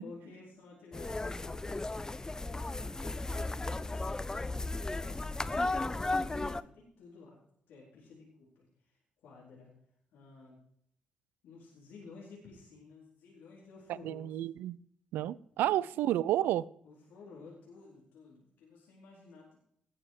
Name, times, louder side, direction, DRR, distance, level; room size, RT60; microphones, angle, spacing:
voice 1, 0.0-1.7 2.4-4.7 5.0-7.4 7.7-9.7 10.1-10.6 11.4-14.4 15.5-16.0 16.8-19.6, left 4 dB, 65° left, -5 dB, 4.2 m, -53 dB
sound 1, 0.9-6.6, left 2 dB, 20° left, 0.6 m, -35 dB
voice 2, 14.0-14.8 15.1-16.7, right 13 dB, 65° right, 22 dB, 0.4 m, -30 dB
18.5 x 7.6 x 4.8 m, 0.69 s
figure-of-eight pair, 40°, 3 cm